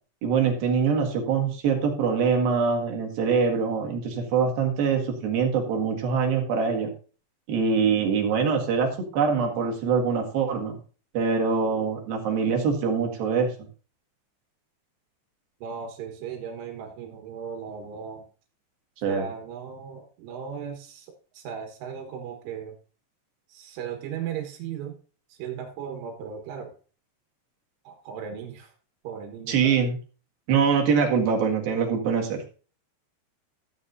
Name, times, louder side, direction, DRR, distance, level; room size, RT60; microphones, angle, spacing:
voice 1, 0.2-6.9 7.5-8.9 9.1-10.8 11.1-13.5 19.0-19.2 29.5-30.0 30.5-32.4, right 6 dB, 60° right, 2 dB, 3.3 m, -24 dB
voice 2, 15.6-18.3 19.1-22.8 23.5-25.0 25.3-26.7 27.9-28.7 29.0-29.9, right 7 dB, 90° right, 2 dB, 4.0 m, -37 dB
14.0 x 8.7 x 2.7 m, 0.38 s
omnidirectional pair, 5.4 m